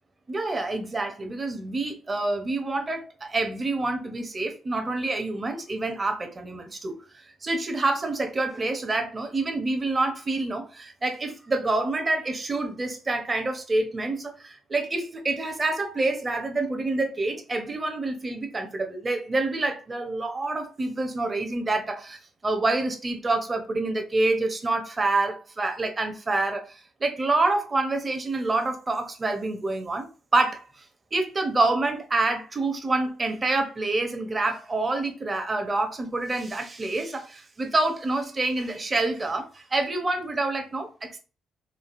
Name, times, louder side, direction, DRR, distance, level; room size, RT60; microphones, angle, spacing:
voice 1, 0.3-6.9 7.4-30.6 31.1-41.2, right 2 dB, 30° right, 0.6 m, -27 dB
3.2 x 2.3 x 2.4 m
cardioid pair, 90°, 0 cm